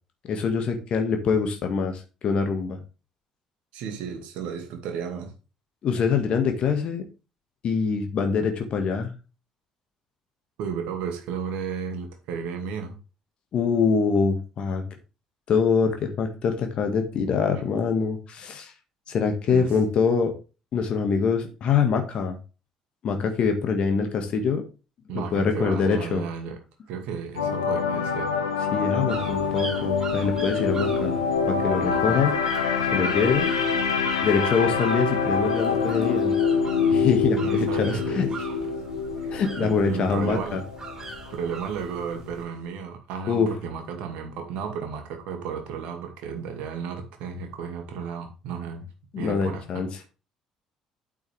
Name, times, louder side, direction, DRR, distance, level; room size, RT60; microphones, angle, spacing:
voice 1, 0.3-2.8 5.8-7.0 7.6-9.1 13.5-14.8 15.5-18.7 19.1-20.3 20.7-22.4 23.0-24.6 25.1-26.2 28.7-31.2 31.5-32.3 32.9-33.5 34.2-36.4 36.9-38.3 39.3-40.6 43.3-43.5 49.1-49.9, left 5 dB, 50° left, 1.8 m, -24 dB
voice 2, 3.7-5.3 10.6-13.0 19.5-19.8 25.1-26.6 26.9-28.3 31.8-32.3 37.4-38.3 39.2-40.7 41.3-48.9 49.2-50.1, right 6 dB, 60° right, 2.3 m, -33 dB
sound 1, 27.4-41.5 41.8-42.0, left 5 dB, 80° left, 1.1 m, -26 dB
sound 2, 29.1-42.4, right 3 dB, 30° right, 5.0 m, -41 dB
9.1 x 8.5 x 3.4 m
figure-of-eight pair, 50°, 2 cm